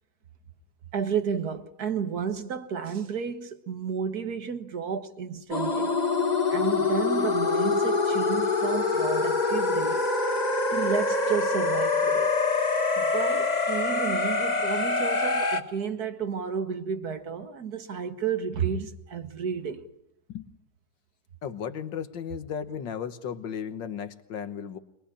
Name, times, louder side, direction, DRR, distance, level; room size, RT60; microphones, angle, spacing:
voice 1, 0.9-6.0 6.5-10.1 10.7-12.3 13.0-19.9, right 7 dB, 60° right, 1.9 m, -32 dB
sound 1, 5.5-15.6, left 3 dB, 25° left, 1.5 m, -25 dB
voice 2, 21.4-24.8, left 7 dB, 90° left, 1.9 m, -35 dB
23.0 x 22.0 x 9.9 m
omnidirectional pair, 1.9 m